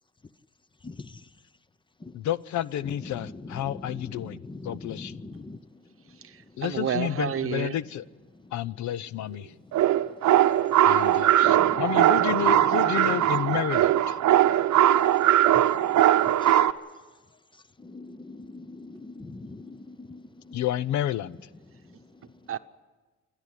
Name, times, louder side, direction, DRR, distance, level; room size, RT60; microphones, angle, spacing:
voice 1, 2.1-5.2 6.6-8.0 8.5-9.5 10.8-14.2 20.5-21.4, left 11 dB, 70° left, 0.6 m, -30 dB
voice 2, 3.6-5.6 11.5-11.8 16.4-16.5 17.8-20.2, left 3 dB, 15° left, 0.7 m, -41 dB
voice 3, 6.2-7.8 22.5-22.6, right 8 dB, 45° right, 0.9 m, -30 dB
sound 1, 9.7-16.7, right 12 dB, 75° right, 0.9 m, -20 dB
28.0 x 11.5 x 10.0 m
cardioid pair, 90°, 30 cm